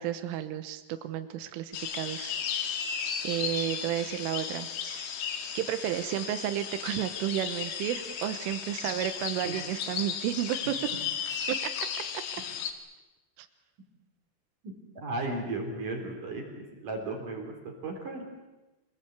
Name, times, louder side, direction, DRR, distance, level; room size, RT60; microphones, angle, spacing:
voice 1, 0.0-2.9 3.2-5.1 5.6-10.8 11.5-11.6 12.1-12.2 13.4-13.5, right 12 dB, 90° right, 9 dB, 3.7 m, -32 dB
sound 1, 1.7-12.7, left 7 dB, 65° left, 3.7 m, -35 dB
voice 2, 14.9-18.2, right 2 dB, 45° right, 2 dB, 4.9 m, -35 dB
27.0 x 20.5 x 8.2 m, 1.1 s
omnidirectional pair, 5.6 m